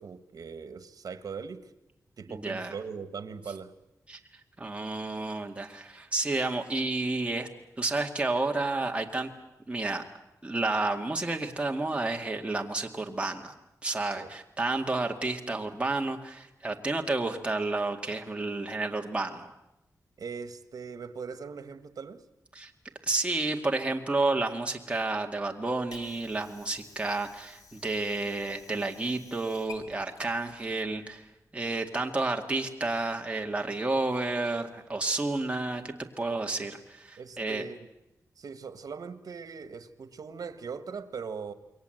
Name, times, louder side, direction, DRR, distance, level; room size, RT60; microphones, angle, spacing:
voice 1, 0.0-1.7 2.2-3.7 14.2-14.3 20.2-22.2 36.3-36.7 37.2-37.9 38.4-41.5, right 5 dB, 80° right, 12 dB, 1.6 m, -40 dB
voice 2, 2.3-2.7 4.1-4.2 4.6-7.5 7.8-9.3 9.7-10.0 10.4-13.5 13.8-19.5 22.5-22.7 23.0-31.3 31.5-37.6, right 2 dB, 20° right, 3 dB, 2.1 m, -31 dB
Water / Sink (filling or washing), 25.7-31.4, left 5 dB, 75° left, 4.7 m, -54 dB
28.0 x 23.0 x 7.9 m, 0.91 s
wide cardioid pair, 155°, 6 cm